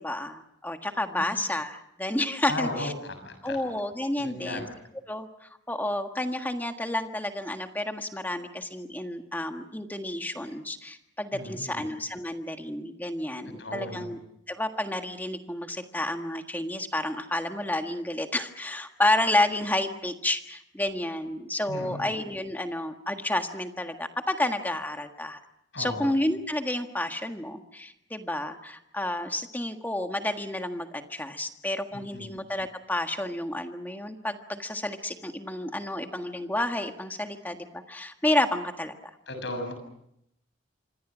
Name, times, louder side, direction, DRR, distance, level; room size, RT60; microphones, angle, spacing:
voice 1, 0.0-2.9 3.4-4.7 5.1-14.2 14.5-25.4 25.8-39.1, left 1 dB, 10° left, 5 dB, 1.6 m, -30 dB
voice 2, 2.5-2.9 3.2-3.6 4.2-4.6 11.3-11.8 13.6-14.1 21.7-22.1 25.7-26.0 32.1-32.3 39.3-39.7, left 2 dB, 65° left, 7 dB, 7.1 m, -35 dB
27.0 x 25.0 x 6.2 m, 0.77 s
head